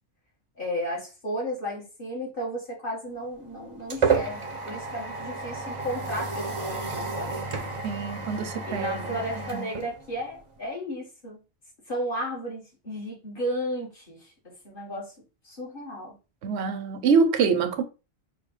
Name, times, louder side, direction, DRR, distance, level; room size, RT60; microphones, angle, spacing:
voice 1, 0.6-7.8 8.7-11.4 11.9-15.1 15.4-16.1, equal, 55° left, 1.8 m, -34 dB
sound 1, 3.2-10.6, right 4 dB, 40° right, 0.5 m, -31 dB
voice 2, 7.8-9.2 9.5-9.7 16.4-17.8, right 5 dB, 85° right, 0.9 m, -25 dB
4.9 x 2.2 x 3.1 m
omnidirectional pair, 1.1 m